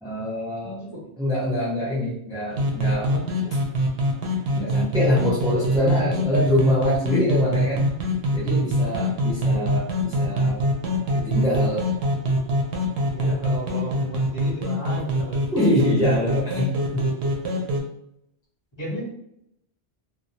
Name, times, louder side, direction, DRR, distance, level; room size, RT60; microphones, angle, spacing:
voice 1, 0.0-0.8 1.2-3.2 4.6-7.8 8.3-10.6 11.1-11.8 15.5-17.1, equal, 5° right, -9 dB, 0.6 m, -24 dB
voice 2, 0.6-1.1 13.1-15.5 18.8-19.0, right 1 dB, 30° left, -8 dB, 0.9 m, -33 dB
sound 1, 2.5-17.8, equal, 90° right, 0.9 m, -24 dB
2.2 x 2.0 x 2.7 m, 0.74 s
omnidirectional pair, 1.1 m